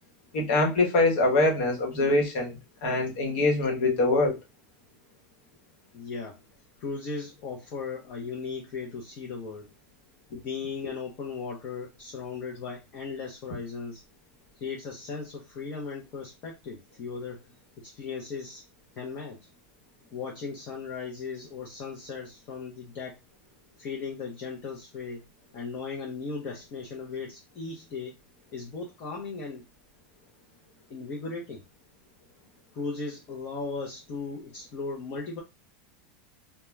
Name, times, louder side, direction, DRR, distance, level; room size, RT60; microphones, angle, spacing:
voice 1, 0.3-4.4, left 2 dB, 70° left, 1.0 m, -24 dB
voice 2, 5.9-6.4 6.8-9.7 10.3-14.0 14.6-17.5 17.8-18.6 19.0-19.4 20.1-23.2 23.8-25.2 25.5-28.1 28.5-29.6 30.9-31.6 32.7-35.4, left 4 dB, 35° left, 0.6 m, -37 dB
2.3 x 2.2 x 3.1 m
supercardioid pair, 170°, 6 cm